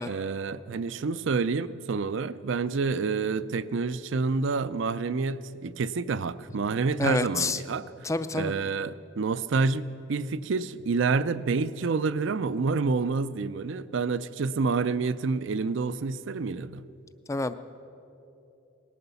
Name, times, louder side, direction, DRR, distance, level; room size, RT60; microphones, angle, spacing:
voice 1, 0.1-16.8, right 4 dB, 60° right, 16 dB, 0.4 m, -28 dB
voice 2, 7.0-7.6 8.0-8.5 17.3-17.5, left 2 dB, 15° left, 12 dB, 0.4 m, -27 dB
18.5 x 11.0 x 6.9 m, 2.8 s
head